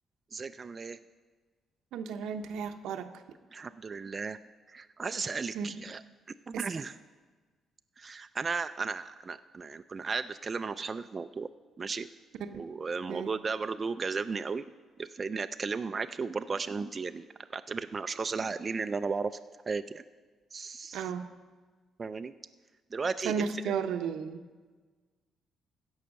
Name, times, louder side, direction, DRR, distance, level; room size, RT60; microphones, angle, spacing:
voice 1, 0.3-1.0 3.5-4.4 4.7-6.0 6.5-6.9 8.0-11.5 11.8-12.1 12.5-14.6 15.0-17.3 17.5-19.4 19.7-20.0 20.5-21.0 22.0-22.3 22.9-23.5, right 4 dB, 35° right, 10 dB, 0.3 m, -35 dB
voice 2, 1.9-3.1 5.5-5.7 6.5-6.7 12.4-12.7 13.1-13.3 20.9-21.3 23.2-24.4, right 6 dB, 85° right, 8 dB, 0.7 m, -34 dB
16.0 x 5.6 x 6.4 m, 1.4 s
cardioid pair, 90°, 0 cm